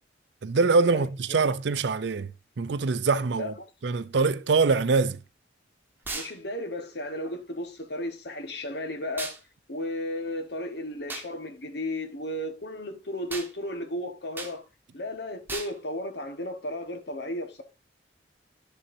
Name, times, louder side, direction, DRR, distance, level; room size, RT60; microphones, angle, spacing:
voice 1, 0.4-2.3 2.6-3.5 3.8-5.2, right 4 dB, 70° right, 0.5 m, -24 dB
voice 2, 6.1-9.4 9.7-14.6 14.9-17.6, left 1 dB, 60° left, 1.3 m, -34 dB
sound 1, 6.1-6.3 9.2-9.4 11.1-11.3 13.3-13.5 14.4-14.6 15.5-15.7, right 3 dB, 10° right, 1.2 m, -35 dB
11.0 x 6.9 x 2.7 m
head